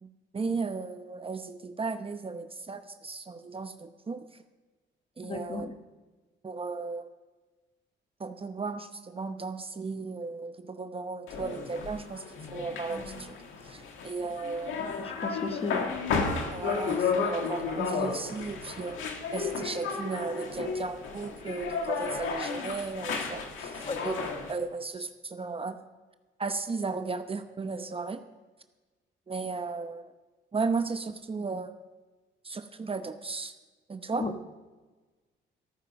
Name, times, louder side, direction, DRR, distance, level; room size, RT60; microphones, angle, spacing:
voice 1, 0.0-4.4 5.2-5.7 6.4-7.1 8.2-12.2 12.5-13.3 13.6-14.9 16.5-19.0 19.3-25.8 26.4-28.2 29.3-30.1 30.5-31.7 32.4-33.5 33.9-34.2, right 4 dB, 30° right, 8 dB, 0.9 m, -35 dB
voice 2, 5.2-5.7 14.8-15.9 23.8-24.0 34.2-34.3, left 3 dB, 30° left, 7 dB, 1.2 m, -34 dB
sound 1, 11.3-24.5, left 5 dB, 80° left, 1.8 m, -33 dB
sound 2, 18.3-20.7, right 5 dB, 45° right, 1.3 m, -47 dB
15.0 x 9.2 x 5.3 m, 1.3 s
cardioid pair, 90°, 20 cm